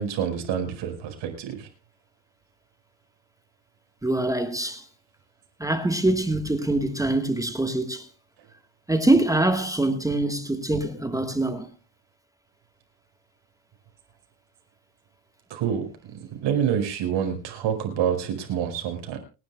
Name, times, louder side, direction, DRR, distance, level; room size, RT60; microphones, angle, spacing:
voice 1, 0.0-1.7 15.5-15.9 16.1-19.2, right 8 dB, 90° right, 5.1 m, -27 dB
voice 2, 4.0-4.8 5.6-8.1 8.9-11.7, right 2 dB, 10° right, 1.3 m, -24 dB
29.0 x 10.5 x 2.2 m
cardioid pair, 155°, 44 cm